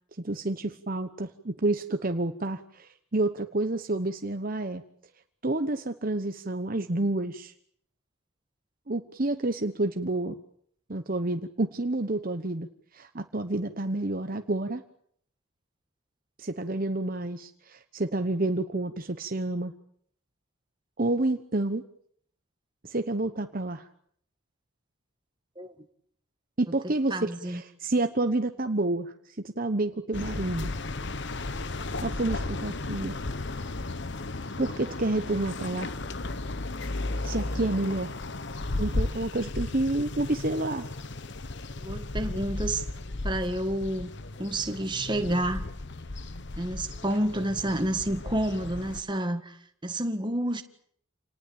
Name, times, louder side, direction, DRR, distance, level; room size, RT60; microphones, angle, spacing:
voice 1, 0.2-4.8 5.4-7.5 8.9-10.3 10.9-12.7 12.9-14.8 16.4-19.7 21.0-21.8 22.8-23.9 26.6-30.7 32.0-33.2 34.6-35.9 37.2-38.1 38.8-40.9, right 2 dB, 40° right, 8 dB, 1.0 m, -29 dB
voice 2, 27.1-27.6 41.8-42.8 43.2-44.1 44.4-45.7 46.6-49.6 49.8-50.6, right 1 dB, 20° right, 7 dB, 1.8 m, -29 dB
sound 1, 30.1-49.0, left 2 dB, 55° left, 1.1 m, -35 dB
28.5 x 19.5 x 8.8 m, 0.66 s
head